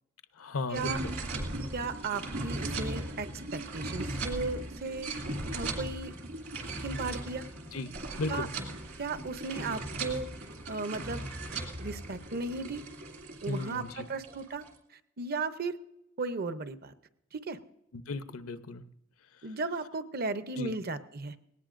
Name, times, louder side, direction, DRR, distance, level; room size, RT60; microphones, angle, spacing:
voice 1, 0.4-1.2 7.7-7.9 8.2-8.5 13.5-14.1 17.9-18.8 20.6-20.7, left 3 dB, 80° left, 11 dB, 0.8 m, -35 dB
sound 1, 0.7-14.7, right 2 dB, 65° right, 2.3 m, -38 dB
voice 2, 1.7-5.1 5.5-6.1 6.8-7.5 8.3-8.5 9.0-10.3 10.7-11.2 11.8-12.8 13.4-14.6 15.2-15.8 16.2-16.9 17.3-17.6 19.4-21.3, right 3 dB, 45° right, 11 dB, 0.7 m, -35 dB
19.5 x 18.0 x 2.6 m, 0.84 s
head